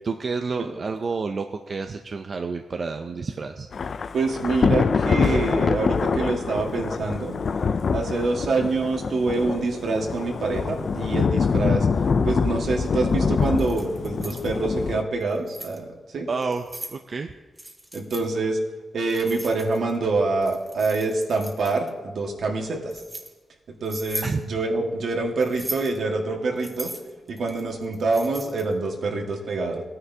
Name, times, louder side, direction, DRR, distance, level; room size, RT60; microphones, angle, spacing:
voice 1, 0.0-3.7 16.3-17.3 24.2-24.4, right 4 dB, 45° right, 6 dB, 0.4 m, -29 dB
Thunder / Rain, 3.7-15.0, left 5 dB, 55° left, 0.4 m, -25 dB
voice 2, 4.1-7.3 7.9-11.9 12.2-16.3 17.9-18.6 18.9-23.0 23.8-26.9 27.3-29.8, right 3 dB, 70° right, 1 dB, 1.6 m, -26 dB
Keys jangling, 13.4-14.5 15.2-15.8 16.4-17.0 17.6-18.2 19.1-20.0 20.4-21.9 22.5-23.3 23.8-24.3 25.4-26.0 26.6-28.7, right 1 dB, 15° right, 1.1 m, -38 dB
17.0 x 9.7 x 2.7 m, 1.3 s
wide cardioid pair, 110°, 0 cm